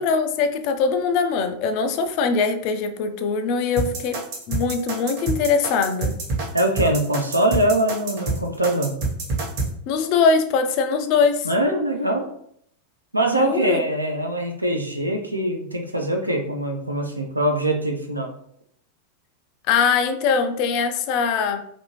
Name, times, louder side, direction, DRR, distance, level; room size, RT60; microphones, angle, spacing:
voice 1, 0.0-4.2 4.5-6.2 9.9-11.5 13.3-13.8 19.7-21.6, left 5 dB, 45° left, 8 dB, 0.3 m, -22 dB
sound 1, 3.8-9.7, right 3 dB, 45° right, 1.0 m, -26 dB
voice 2, 6.5-9.0 11.4-12.3 13.1-18.3, right 1 dB, 85° right, 4 dB, 0.4 m, -23 dB
2.6 x 2.6 x 2.9 m, 0.68 s
figure-of-eight pair, 90°, 0 cm